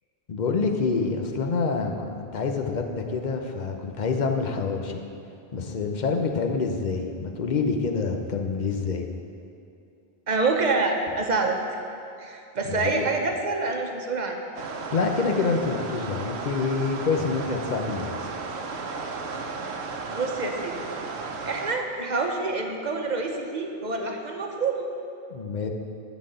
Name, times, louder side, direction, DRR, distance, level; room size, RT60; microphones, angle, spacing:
voice 1, 0.3-5.0 5.5-9.1 12.7-13.1 14.9-18.3 25.3-25.7, left 4 dB, 50° left, 4 dB, 0.9 m, -27 dB
voice 2, 10.3-11.6 12.2-14.4 20.1-20.8 21.4-24.9, right 3 dB, 45° right, 3 dB, 1.0 m, -27 dB
sound 1, 14.6-21.8, right 4 dB, 80° right, 1.0 m, -34 dB
12.0 x 4.1 x 7.8 m, 2.6 s
omnidirectional pair, 1.1 m